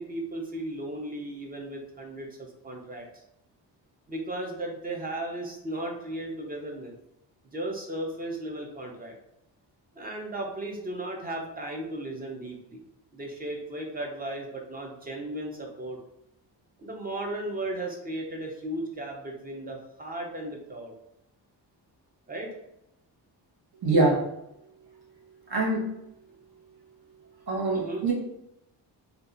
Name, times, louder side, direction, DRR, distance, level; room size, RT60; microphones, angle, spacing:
voice 1, 0.0-3.1 4.1-6.9 7.5-9.2 9.9-12.8 13.1-16.0 16.8-20.9 22.3-22.5 27.7-28.1, right 1 dB, 20° right, 0 dB, 0.5 m, -35 dB
voice 2, 23.8-24.2 25.5-25.9 27.5-28.1, right 2 dB, 60° right, -3 dB, 1.1 m, -24 dB
2.7 x 2.4 x 3.7 m, 0.84 s
wide cardioid pair, 165°, 43 cm